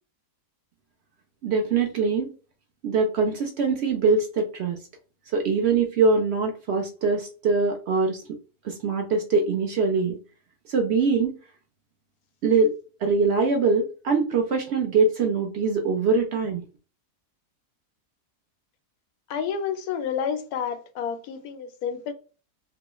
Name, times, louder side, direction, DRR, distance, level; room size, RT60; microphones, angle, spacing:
voice 1, 1.4-2.3 2.8-4.8 5.3-8.2 8.6-10.2 10.7-11.4 12.4-12.7 13.0-16.6, right 4 dB, 75° right, 0.6 m, -23 dB
voice 2, 19.3-22.1, left 7 dB, 75° left, 1.0 m, -30 dB
3.0 x 2.3 x 2.9 m
omnidirectional pair, 1.7 m